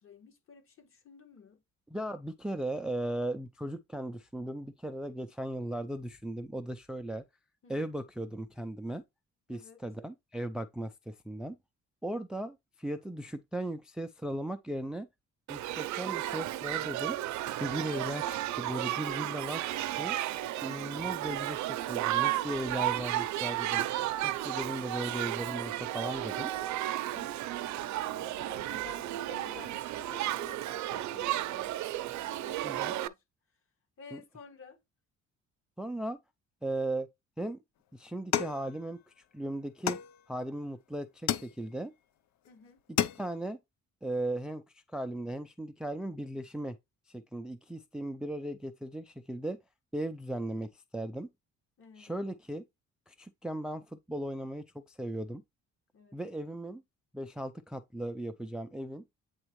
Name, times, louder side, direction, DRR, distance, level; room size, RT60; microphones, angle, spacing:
voice 1, 0.0-1.6 7.6-7.9 9.5-9.8 20.7-21.1 27.1-31.7 32.2-33.2 34.0-34.8 42.5-42.8 51.8-52.1 55.9-56.2, left 5 dB, 45° left, 1.8 m, -53 dB
voice 2, 1.9-7.2 7.7-9.0 9.5-11.6 12.0-15.1 15.5-17.2 17.6-20.1 20.6-23.8 24.2-26.5 32.6-32.9 34.1-34.2 35.8-36.2 36.6-37.1 37.4-37.6 37.9-40.0 40.3-41.9 43.2-43.6 44.0-44.6 44.9-46.8 47.1-49.6 49.9-51.3 52.0-52.6 53.1-55.4 56.1-56.8 57.1-59.0, right 1 dB, 5° right, 0.3 m, -37 dB
Shout / Human group actions, 15.5-33.1, right 14 dB, 75° right, 0.5 m, -33 dB
sound 1, 38.3-39.3 39.9-40.6 41.3-42.0 42.5-42.6 42.8-43.5, left 10 dB, 70° left, 0.7 m, -33 dB
8.8 x 3.5 x 3.1 m
cardioid pair, 145°, 29 cm